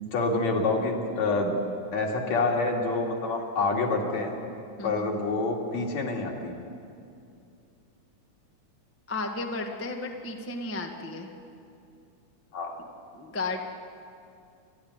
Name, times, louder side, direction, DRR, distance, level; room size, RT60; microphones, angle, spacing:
voice 1, 0.1-1.5 1.9-4.3 4.8-6.5 12.5-12.8, left 3 dB, 65° left, 0 dB, 3.6 m, -27 dB
voice 2, 9.1-11.3 13.1-13.6, left 3 dB, 15° left, 2 dB, 0.4 m, -33 dB
28.5 x 12.0 x 9.6 m, 2.5 s
omnidirectional pair, 3.6 m